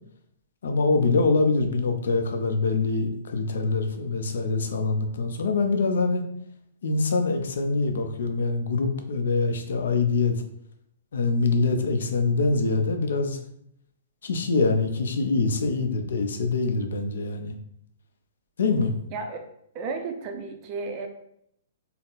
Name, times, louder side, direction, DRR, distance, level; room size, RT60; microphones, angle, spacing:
voice 1, 0.6-6.3 6.8-10.4 11.1-13.4 14.2-17.5 18.6-18.9, left 3 dB, 75° left, 6 dB, 0.6 m, -24 dB
voice 2, 19.1-19.5 19.7-21.1, right 4 dB, 25° right, 5 dB, 0.4 m, -33 dB
4.1 x 2.0 x 4.0 m, 0.73 s
hypercardioid pair, 170°, 0 cm